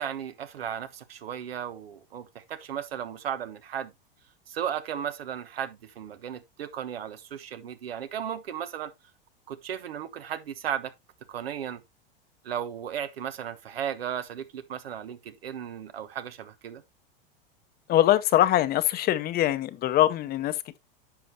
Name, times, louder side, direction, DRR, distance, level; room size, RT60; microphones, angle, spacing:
voice 1, 0.0-3.9 4.5-8.9 9.5-10.9 11.3-11.8 12.4-16.8, right 9 dB, 90° right, 1.2 m, -35 dB
voice 2, 17.9-20.8, left 13 dB, 30° left, 0.8 m, -23 dB
10.5 x 6.2 x 2.8 m
hypercardioid pair, 115°, 29 cm